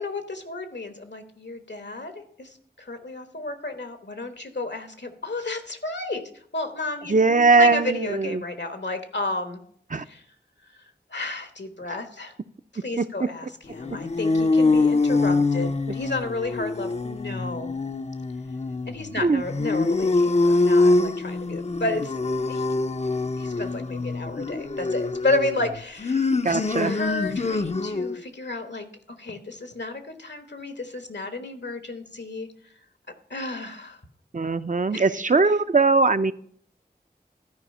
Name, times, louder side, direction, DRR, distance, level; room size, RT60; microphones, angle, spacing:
voice 1, 0.0-6.2 6.5-9.6 10.1-10.2 10.7-12.3 12.8-17.7 18.9-22.2 22.5-22.6 23.4-28.8 29.2-32.5 33.3-34.0 34.9-35.3, left 2 dB, 80° left, 8 dB, 1.3 m, -32 dB
voice 2, 7.1-8.4 9.9-10.0 13.0-13.1 19.2-19.4 26.4-26.9 34.3-36.3, right 3 dB, 45° right, 12 dB, 0.5 m, -20 dB
sound 1, 13.7-28.2, left 3 dB, 40° left, 0.5 m, -24 dB
13.0 x 4.9 x 5.4 m, 0.62 s
wide cardioid pair, 45°, 18 cm